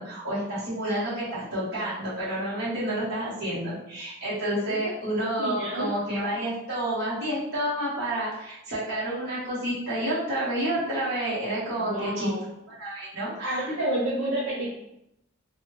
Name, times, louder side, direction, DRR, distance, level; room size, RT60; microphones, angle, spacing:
voice 1, 0.0-12.3 12.8-13.7, right 1 dB, 55° right, -10 dB, 1.4 m, -29 dB
voice 2, 5.4-6.0 11.8-12.4 13.4-14.7, right 1 dB, 70° right, -6 dB, 0.7 m, -30 dB
4.0 x 2.3 x 3.0 m, 0.81 s
head